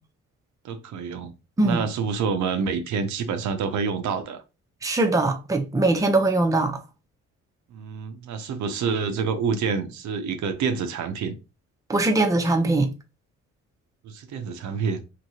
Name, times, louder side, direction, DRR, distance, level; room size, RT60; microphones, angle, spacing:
voice 1, 0.6-1.3 1.6-4.4 7.7-11.4 14.0-15.0, right 5 dB, 70° right, 0.6 m, -27 dB
voice 2, 4.8-6.8 11.9-12.9, right 2 dB, 10° right, 0.6 m, -21 dB
2.9 x 2.8 x 2.7 m
cardioid pair, 90°, 30 cm